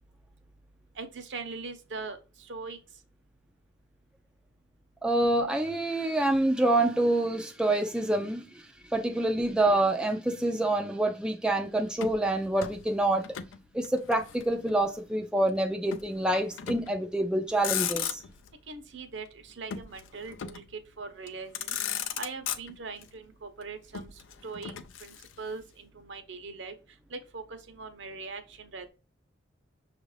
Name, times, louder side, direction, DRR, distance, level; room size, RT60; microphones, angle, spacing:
voice 1, 1.0-2.2 2.5-2.8 18.7-20.6 21.0-21.8 22.2-24.1 24.4-24.7 25.0-26.7 27.1-28.9, right 4 dB, 70° right, 0.8 m, -41 dB
voice 2, 5.0-8.4 8.9-13.2 13.7-18.2, right 1 dB, 5° right, 0.4 m, -26 dB
Motor vehicle (road), 11.9-13.6 13.8-14.9 15.9-16.1 16.6-17.0 17.4-18.5 19.7-20.8 21.3-21.4 21.5-23.1 23.9-25.6, left 9 dB, 80° left, 0.4 m, -36 dB
6.2 x 2.5 x 3.2 m
head